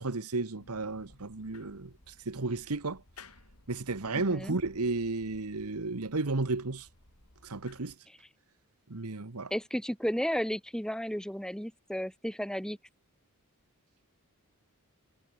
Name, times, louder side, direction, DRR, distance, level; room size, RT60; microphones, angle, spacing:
voice 1, 0.0-3.0 3.7-6.9 7.4-7.9 8.9-9.5, right 3 dB, 80° right, 1.3 m, -33 dB
sound 1, 0.6-8.0, left 3 dB, 80° left, 6.0 m, -57 dB
voice 2, 4.2-4.6 9.5-12.8, equal, 5° left, 2.2 m, -33 dB
head